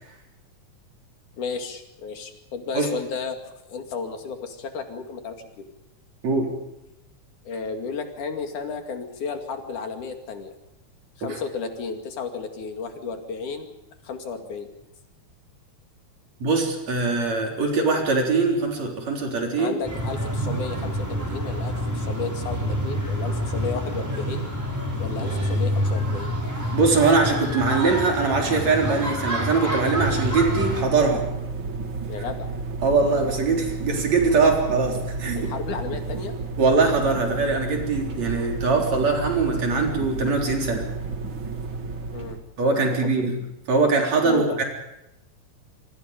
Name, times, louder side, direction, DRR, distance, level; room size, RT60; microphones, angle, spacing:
voice 1, 1.4-3.4 3.7-5.6 7.5-10.5 11.2-13.7 14.0-14.7 19.6-24.5 25.0-26.3 32.1-32.5 35.3-36.3 42.1-42.4 42.7-43.3 44.2-44.6, left 5 dB, 75° left, 5 dB, 3.9 m, -33 dB
voice 2, 16.4-19.8 26.7-31.3 32.8-35.4 36.6-40.9 42.6-43.3 43.7-44.6, right 4 dB, 60° right, 1 dB, 5.1 m, -22 dB
sound 1, 19.8-30.8, equal, 5° right, 5.0 m, -27 dB
sound 2, 30.0-42.4, right 4 dB, 45° right, 2.4 m, -32 dB
26.5 x 24.0 x 5.3 m, 0.91 s
omnidirectional pair, 3.6 m